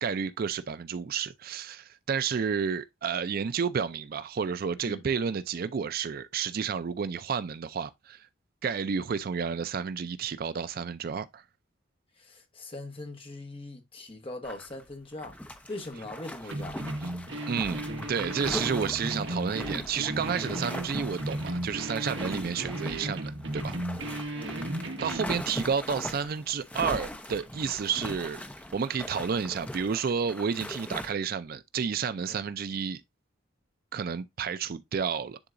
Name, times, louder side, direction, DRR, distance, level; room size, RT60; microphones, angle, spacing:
voice 1, 0.0-8.3 8.6-11.4 17.5-23.8 25.0-28.4 28.7-33.0 33.9-35.4, right 6 dB, 50° right, 0.4 m, -31 dB
voice 2, 12.2-15.4 15.7-16.8 24.0-24.6 32.3-32.4, left 2 dB, 30° left, 1.3 m, -41 dB
sound 1, 14.4-14.8 15.1-31.1, left 1 dB, 5° left, 0.6 m, -40 dB
sound 2, 16.5-25.4, right 1 dB, 65° right, 1.4 m, -35 dB
9.8 x 3.8 x 2.5 m
head